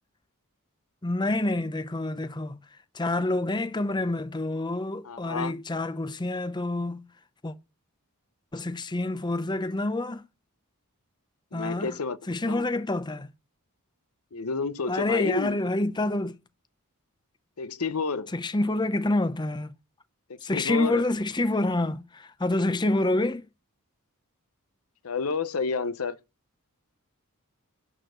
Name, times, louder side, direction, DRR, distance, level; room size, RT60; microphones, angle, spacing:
voice 1, 1.0-2.6 2.9-7.0 7.4-7.5 8.5-10.2 11.5-11.9 12.3-13.3 14.9-16.3 18.3-19.7 20.4-23.4, left 2 dB, 20° left, 0.7 m, -27 dB
voice 2, 5.0-5.5 11.5-12.2 12.5-12.6 14.3-15.6 17.6-18.3 20.5-21.1 25.0-26.2, left 4 dB, 70° left, 0.8 m, -30 dB
11.0 x 4.3 x 7.9 m
head